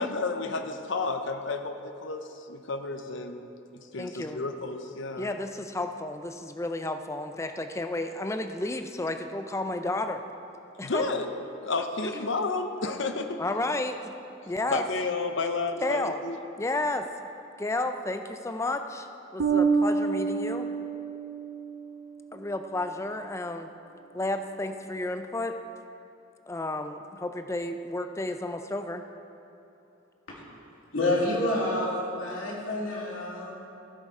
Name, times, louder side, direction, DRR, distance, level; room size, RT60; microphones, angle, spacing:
voice 1, 0.0-3.4 3.9-5.3 10.8-11.3 11.6-13.4 14.7-16.4, left 3 dB, 65° left, 7 dB, 0.7 m, -31 dB
voice 2, 4.0-4.4 5.2-10.2 10.8-11.1 12.0-12.3 13.4-14.0 14.5-14.8 15.8-16.2 16.6-17.1 17.6-19.1 19.3-20.7 22.3-23.7 24.1-25.6 26.5-29.0, left 2 dB, 15° left, 7 dB, 0.4 m, -32 dB
Bass guitar, 19.4-22.0, right 5 dB, 70° right, 0.6 m, -27 dB
voice 3, 30.9-33.5, left 1 dB, 80° left, -4 dB, 2.7 m, -28 dB
15.5 x 6.7 x 4.8 m, 2.8 s
head